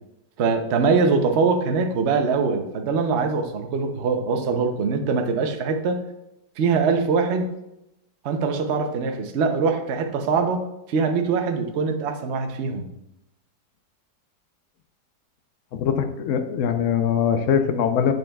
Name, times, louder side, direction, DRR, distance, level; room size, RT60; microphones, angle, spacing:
voice 1, 0.4-6.0 6.6-7.5 8.2-12.9, right 4 dB, 60° right, 5 dB, 0.7 m, -23 dB
voice 2, 15.7-18.1, left 8 dB, 70° left, 8 dB, 0.7 m, -22 dB
7.9 x 7.2 x 2.3 m, 0.89 s
omnidirectional pair, 1.9 m